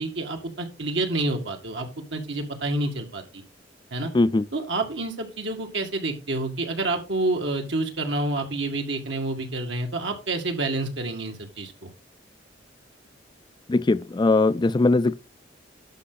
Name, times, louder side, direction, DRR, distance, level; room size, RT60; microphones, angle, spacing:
voice 1, 0.0-3.4 3.9-4.1 4.5-11.9, right 2 dB, 70° right, 2.2 m, -28 dB
voice 2, 13.7-15.1, left 2 dB, 25° left, 0.4 m, -20 dB
11.5 x 5.8 x 4.0 m
head